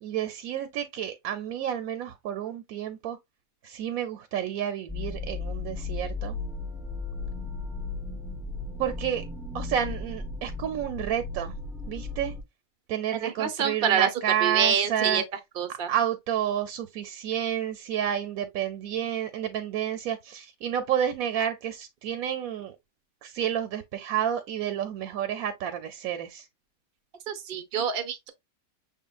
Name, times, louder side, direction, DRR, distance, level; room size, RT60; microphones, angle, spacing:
voice 1, 0.0-3.2 3.6-6.4 8.8-9.2 9.5-11.6 11.9-12.3 12.9-15.2 15.9-22.7 23.2-26.5, right 10 dB, 75° right, 1.1 m, -30 dB
sound 1, 4.9-12.4, left 3 dB, ahead, 0.3 m, -35 dB
voice 2, 13.2-14.1 14.4-15.2 15.6-15.9 27.3-28.3, right 8 dB, 50° right, 0.7 m, -26 dB
6.2 x 3.7 x 2.3 m
omnidirectional pair, 1.6 m